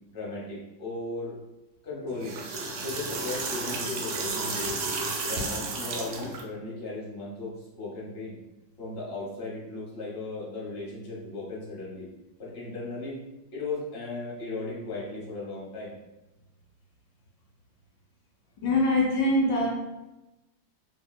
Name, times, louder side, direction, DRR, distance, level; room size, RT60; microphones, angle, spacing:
voice 1, 0.1-1.3 1.8-2.4 2.8-4.8 5.2-8.4 8.8-12.1 12.4-13.2 13.5-16.0, left 2 dB, 40° left, -7 dB, 1.0 m, -36 dB
sound 1, 2.1-6.4, right 3 dB, 75° right, 1.1 m, -32 dB
voice 2, 18.6-19.7, left 1 dB, 75° left, -2 dB, 1.3 m, -23 dB
3.1 x 2.7 x 2.2 m, 1.0 s
omnidirectional pair, 2.1 m